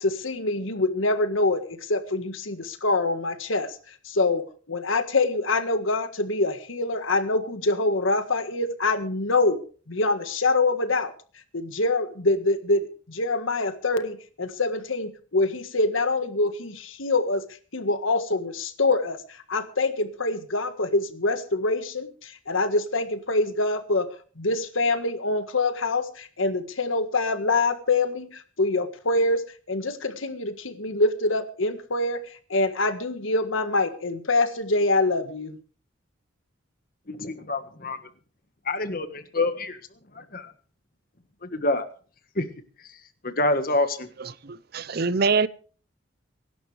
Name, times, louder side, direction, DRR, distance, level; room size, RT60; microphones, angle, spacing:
voice 1, 0.0-4.4 4.7-9.6 9.9-11.1 11.5-17.4 17.7-24.1 24.4-29.4 29.7-32.2 32.5-35.6, left 2 dB, 80° left, 1.7 m, -25 dB
voice 2, 37.1-38.0 38.6-39.8 40.1-40.5 41.4-41.9 42.3-42.4 43.2-44.1, left 2 dB, 45° left, 1.5 m, -26 dB
voice 3, 44.4-45.5, right 4 dB, 50° right, 0.6 m, -24 dB
23.5 x 11.5 x 3.4 m
head